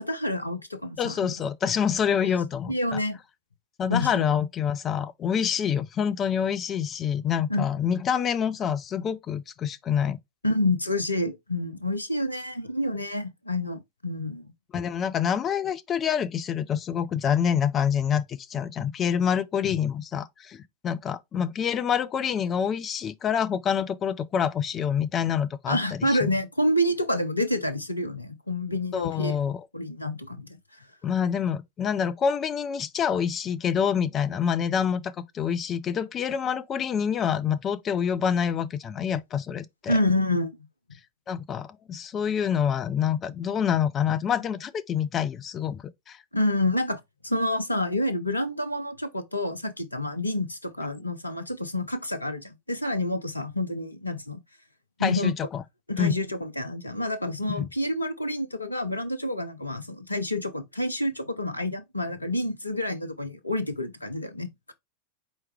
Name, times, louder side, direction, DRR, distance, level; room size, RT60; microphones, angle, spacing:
voice 1, 0.0-1.3 2.7-3.2 3.9-4.2 7.5-7.6 10.4-14.5 25.7-29.3 29.7-30.6 39.9-40.6 46.3-54.4 55.0-55.3 55.9-64.7, left 1 dB, 85° left, 0.7 m, -28 dB
voice 2, 1.0-3.0 3.8-10.2 14.7-26.3 28.9-29.7 31.0-40.0 41.3-46.2 55.0-55.6 56.0-56.2 57.6-57.7, left 8 dB, 25° left, 0.5 m, -27 dB
4.5 x 3.1 x 3.4 m
figure-of-eight pair, 90°, 0 cm